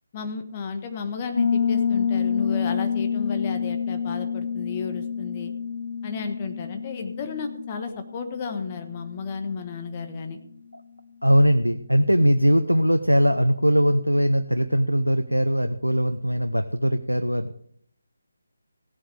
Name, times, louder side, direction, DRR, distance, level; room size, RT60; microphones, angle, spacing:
voice 1, 0.1-5.5 6.0-10.4, left 5 dB, 25° left, 5 dB, 1.4 m, -33 dB
Piano, 1.4-9.9, left 6 dB, 55° left, 1.4 m, -28 dB
voice 2, 11.2-17.5, equal, 90° right, 8 dB, 0.8 m, -20 dB
16.5 x 7.9 x 4.9 m, 0.66 s
figure-of-eight pair, 150°, 0 cm